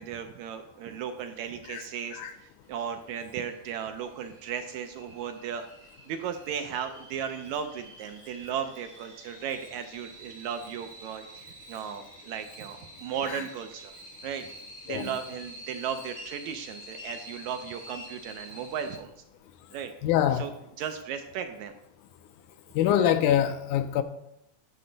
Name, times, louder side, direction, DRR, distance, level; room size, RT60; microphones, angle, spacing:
voice 1, 0.0-5.7 6.1-13.9 14.2-14.5 14.9-19.1 19.7-19.9 20.3-20.5 20.8-21.7, right 8 dB, 80° right, 7 dB, 1.7 m, -36 dB
sound 1, 2.6-19.0, equal, 25° right, 0.6 m, -48 dB
voice 2, 20.0-20.5 22.8-24.0, left 10 dB, 80° left, 10 dB, 1.9 m, -24 dB
9.8 x 7.4 x 3.9 m, 0.80 s
omnidirectional pair, 3.7 m